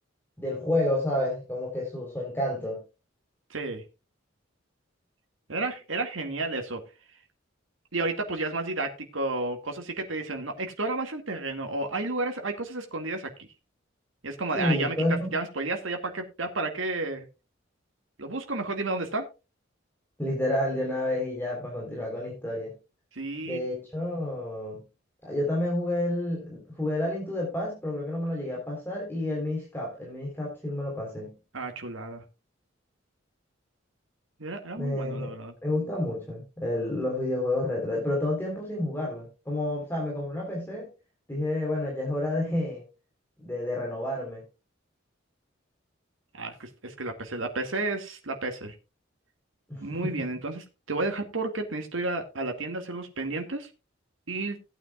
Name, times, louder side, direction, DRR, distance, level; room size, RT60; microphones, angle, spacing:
voice 1, 0.4-2.8 14.5-15.3 20.2-22.7 23.4-24.8 25.2-31.3 34.8-35.3 35.6-40.9 41.3-42.8 43.4-44.4 49.7-50.2, left 1 dB, 10° left, -3 dB, 3.8 m, -30 dB
voice 2, 3.5-3.8 5.5-6.8 7.9-13.5 14.2-15.0 15.3-17.3 18.2-19.2 23.1-23.6 31.5-32.2 34.4-35.5 46.3-48.7 49.8-53.7 54.3-54.6, right 2 dB, 80° right, 4 dB, 2.0 m, -32 dB
18.0 x 9.1 x 2.4 m, 0.29 s
head